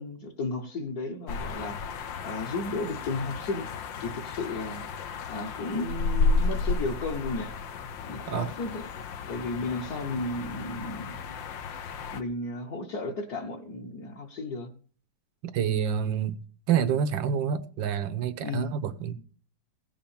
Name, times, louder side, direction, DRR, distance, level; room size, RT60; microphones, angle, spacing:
voice 1, 0.0-1.8 2.2-3.7 4.0-4.9 5.3-7.5 8.1-8.9 9.3-11.4 12.1-14.7 18.4-18.7, left 2 dB, 55° left, 1.6 m, -34 dB
sound 1, 1.3-12.2, left 4 dB, 80° left, 1.7 m, -32 dB
voice 2, 15.4-16.4 16.7-19.1, right 8 dB, 85° right, 1.6 m, -27 dB
16.5 x 5.9 x 7.1 m
omnidirectional pair, 2.0 m